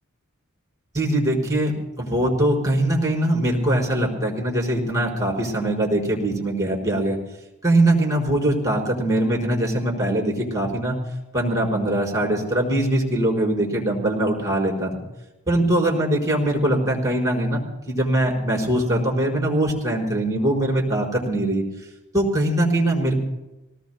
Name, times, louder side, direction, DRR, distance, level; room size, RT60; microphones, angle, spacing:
voice 1, 0.9-7.2 7.6-11.0 11.3-15.0 15.5-17.6 17.9-21.6 22.1-23.2, right 1 dB, 15° right, -2 dB, 4.8 m, -22 dB
27.0 x 18.5 x 2.2 m, 1.0 s
head